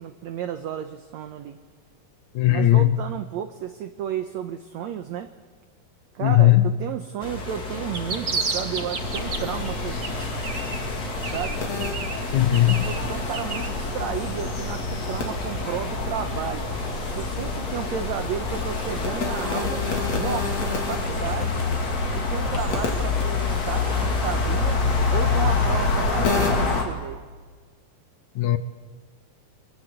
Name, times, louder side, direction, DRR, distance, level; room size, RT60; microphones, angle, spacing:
voice 1, 0.0-1.6 2.5-5.3 6.2-10.3 11.2-11.6 12.9-16.7 17.1-19.8 20.1-21.6 22.1-24.8 25.1-27.2, right 9 dB, 70° right, 1.8 m, -33 dB
voice 2, 2.4-2.9 6.2-6.7 12.3-12.9 28.4-28.6, left 14 dB, 70° left, 2.1 m, -17 dB
sound 1, 7.2-26.7, left 1 dB, 30° left, 2.5 m, -33 dB
sound 2, 7.7-9.7 10.0-10.9 11.2-13.7, right 5 dB, 55° right, 0.9 m, -32 dB
sound 3, 9.0-26.8, left 4 dB, 50° left, 3.8 m, -27 dB
24.0 x 23.0 x 8.1 m
omnidirectional pair, 4.1 m